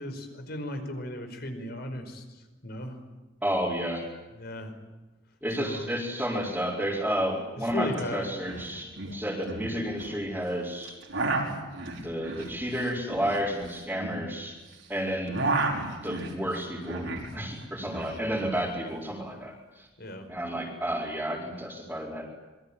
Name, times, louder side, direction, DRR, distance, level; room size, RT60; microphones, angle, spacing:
voice 1, 0.0-3.0 4.3-4.8 5.6-5.9 7.6-8.3 20.0-20.3, left 1 dB, 55° left, 7 dB, 5.2 m, -36 dB
voice 2, 3.4-4.0 5.4-11.0 12.0-14.6 14.9-15.4 16.0-19.9 20.3-22.3, equal, 5° right, -6 dB, 4.7 m, -31 dB
sound 1, 7.9-8.0 8.3-8.7 8.9-10.1 10.8-14.8 15.1-17.3 17.6-18.6, right 2 dB, 75° right, 5.6 m, -32 dB
27.0 x 23.0 x 9.1 m, 1.2 s
head